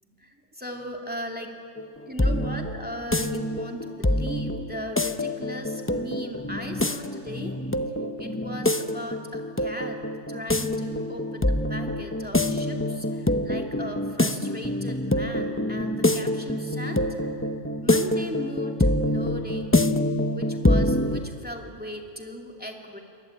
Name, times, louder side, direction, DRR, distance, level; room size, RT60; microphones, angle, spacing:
voice 1, 0.2-1.5 2.1-7.5 8.2-10.0 10.3-17.0 17.8-19.9 20.3-23.0, equal, 5° right, 1 dB, 2.5 m, -38 dB
sound 1, 1.8-21.2, left 1 dB, 15° left, 0.6 m, -26 dB
29.0 x 23.5 x 8.7 m, 2.4 s
omnidirectional pair, 1.4 m